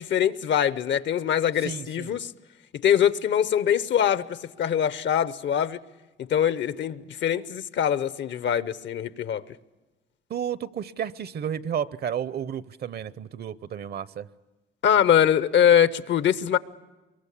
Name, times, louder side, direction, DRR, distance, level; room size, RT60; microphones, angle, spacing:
voice 1, 0.0-2.3 2.7-5.8 6.2-9.4 14.8-16.6, left 9 dB, 65° left, 0.8 m, -23 dB
voice 2, 1.6-2.2 10.3-14.3, right 8 dB, 55° right, 0.7 m, -32 dB
23.5 x 22.5 x 8.4 m
cardioid pair, 90°, 20 cm